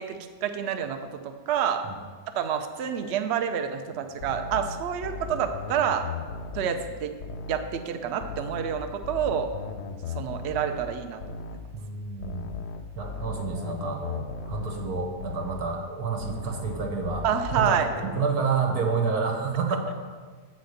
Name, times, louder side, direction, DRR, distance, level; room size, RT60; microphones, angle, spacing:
voice 1, 0.0-1.9 2.3-6.1 6.5-7.2 7.5-9.5 10.1-11.4 17.2-17.9, right 8 dB, 60° right, 7 dB, 0.7 m, -28 dB
sound 1, 4.2-7.7 8.2-11.7 12.2-15.7 16.2-18.2, left 4 dB, 60° left, 0.7 m, -37 dB
voice 2, 11.7-12.5 12.9-17.2 17.5-20.0, right 4 dB, 85° right, 2 dB, 1.6 m, -29 dB
8.3 x 4.3 x 6.5 m, 1.5 s
omnidirectional pair, 1.6 m